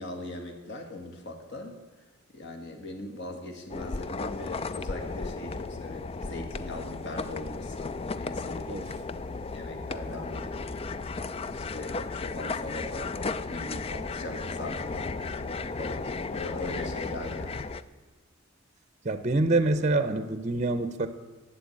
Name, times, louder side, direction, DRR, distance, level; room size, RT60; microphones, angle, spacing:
voice 1, 0.0-1.8 2.3-8.9 9.5-11.2 11.5-15.1 15.4-17.7, left 2 dB, 55° left, 3 dB, 2.0 m, -40 dB
sound 1, 3.7-17.8, left 3 dB, 25° left, 0.4 m, -35 dB
voice 2, 19.0-21.1, right 2 dB, 35° right, 11 dB, 0.7 m, -26 dB
12.0 x 8.2 x 8.6 m, 1.3 s
head